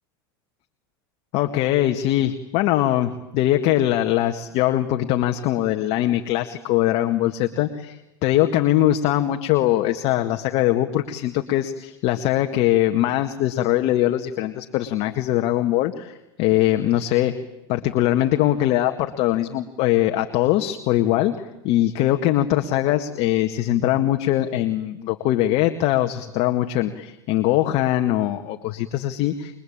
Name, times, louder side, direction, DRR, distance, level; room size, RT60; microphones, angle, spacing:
voice 1, 1.3-17.4 17.7-29.6, left 13 dB, 55° left, 6 dB, 2.0 m, -22 dB
28.5 x 23.0 x 8.8 m, 0.91 s
hypercardioid pair, 100°, 13 cm